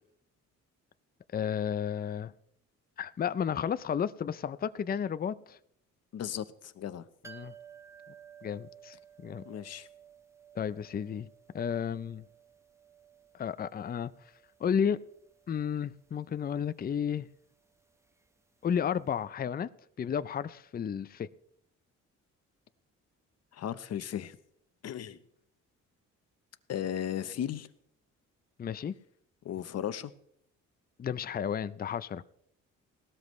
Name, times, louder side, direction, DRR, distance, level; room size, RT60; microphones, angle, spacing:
voice 1, 1.3-2.3 3.0-5.6 7.2-7.5 8.4-9.4 10.6-11.3 11.5-12.2 13.3-14.1 14.6-15.0 15.5-17.3 18.6-19.7 20.0-21.3 28.6-28.9 31.0-32.2, left 8 dB, 30° left, 0.5 m, -32 dB
voice 2, 6.1-7.0 9.4-9.9 23.5-24.4 24.8-25.2 26.7-27.7 29.4-30.1, left 10 dB, 55° left, 0.9 m, -36 dB
sound 1, 7.2-18.9 19.1-19.2, right 8 dB, 10° right, 0.8 m, -56 dB
18.0 x 13.0 x 3.2 m
cardioid pair, 90°, 30 cm